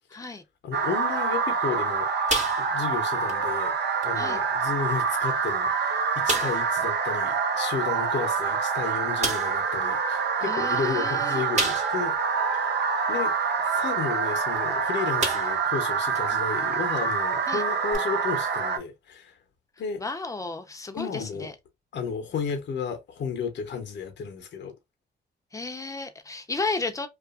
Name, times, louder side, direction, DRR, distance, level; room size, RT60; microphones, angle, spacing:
voice 1, 0.6-2.1 2.6-3.8 4.0-12.1 13.1-13.3 13.7-19.3 19.8-20.0 20.9-21.5 21.9-24.7, left 6 dB, 65° left, 0.8 m, -33 dB
sound 1, 0.7-18.8, right 5 dB, 60° right, 0.6 m, -26 dB
sound 2, 2.3-3.0 3.3-3.5 4.0-4.1 5.0-5.1 5.5-5.6 6.3-6.7 8.3-8.4 9.2-9.6 11.5-12.1 12.6-12.7 14.6-14.7 15.2-15.7 16.1-16.2 17.9-18.0, right 2 dB, 35° right, 1.1 m, -29 dB
voice 2, 10.4-11.4 17.5-17.6 20.0-21.5 25.5-27.1, left 3 dB, 15° left, 0.6 m, -33 dB
2.5 x 2.4 x 2.4 m
cardioid pair, 70°, 19 cm